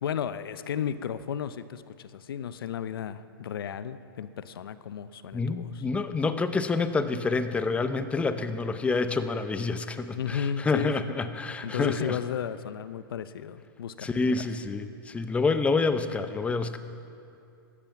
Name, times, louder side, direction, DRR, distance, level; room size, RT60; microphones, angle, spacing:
voice 1, 0.0-5.8 10.2-11.0 11.6-14.5, left 8 dB, 75° left, 14 dB, 0.7 m, -34 dB
voice 2, 5.3-12.2 14.0-16.8, left 4 dB, 10° left, 10 dB, 0.7 m, -28 dB
15.5 x 13.5 x 5.9 m, 2.6 s
hypercardioid pair, 130°, 12 cm